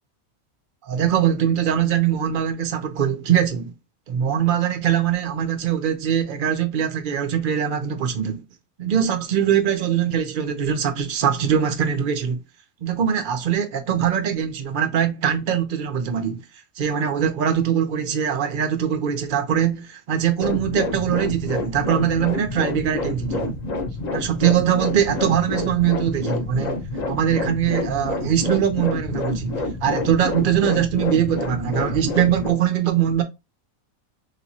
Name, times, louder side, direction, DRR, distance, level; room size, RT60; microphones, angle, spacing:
voice 1, 0.8-3.7 4.1-8.4 8.8-12.4 12.8-16.4 16.8-23.6 24.1-26.8 27.1-33.2, right 9 dB, 75° right, 0.4 m, -22 dB
sound 1, 20.4-32.5, left 2 dB, 45° left, 0.5 m, -28 dB
3.4 x 2.9 x 2.7 m
omnidirectional pair, 1.5 m